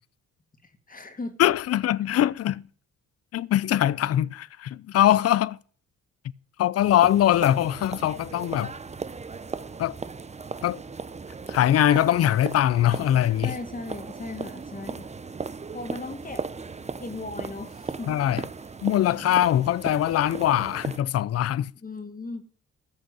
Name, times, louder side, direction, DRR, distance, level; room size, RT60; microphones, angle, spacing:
voice 1, 0.6-1.4 13.4-15.1 15.7-16.5 17.0-18.2 21.8-22.4, left 3 dB, 30° left, 2.2 m, -37 dB
voice 2, 1.4-2.6 3.3-5.6 6.6-8.7 9.8-10.0 10.6-10.8 11.5-13.5 18.1-18.4 18.8-21.7, left 12 dB, 55° left, 0.6 m, -22 dB
sound 1, 6.8-21.0, right 4 dB, 20° right, 0.9 m, -37 dB
14.0 x 6.5 x 8.0 m
cardioid pair, 90°, 30 cm